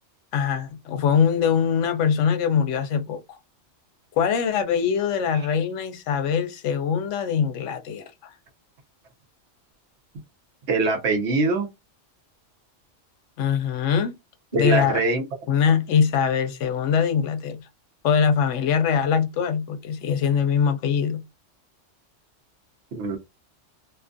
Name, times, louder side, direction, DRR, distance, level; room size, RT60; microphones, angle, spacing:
voice 1, 0.3-3.4 4.1-8.3 13.4-14.1 14.5-15.0 15.5-17.6 18.0-21.2, left 7 dB, 75° left, 0.9 m, -23 dB
voice 2, 10.7-11.7 14.5-15.2 22.9-23.2, right 3 dB, 65° right, 1.0 m, -22 dB
2.6 x 2.3 x 2.5 m
omnidirectional pair, 1.3 m